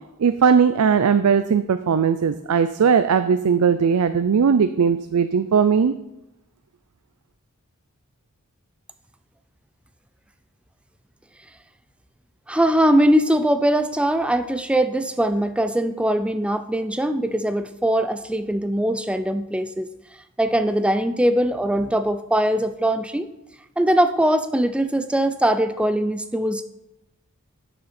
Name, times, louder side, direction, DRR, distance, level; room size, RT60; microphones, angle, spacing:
voice 1, 0.2-5.9, right 6 dB, 80° right, 11 dB, 0.4 m, -18 dB
voice 2, 12.5-19.9 20.4-23.3 23.8-26.6, right 1 dB, 5° right, 9 dB, 0.4 m, -21 dB
11.5 x 6.7 x 4.3 m, 0.92 s
head